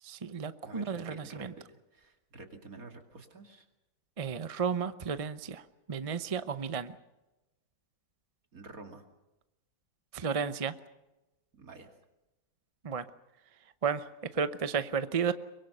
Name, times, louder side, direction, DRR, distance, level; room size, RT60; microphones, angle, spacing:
voice 1, 0.0-1.5 4.2-7.0 10.1-10.7 12.8-13.1 13.8-15.3, right 6 dB, 35° right, 12 dB, 0.5 m, -33 dB
voice 2, 0.6-3.7 8.5-9.0 11.6-11.9, right 3 dB, 55° right, 4 dB, 2.9 m, -49 dB
24.0 x 22.0 x 6.7 m, 1.0 s
omnidirectional pair, 1.8 m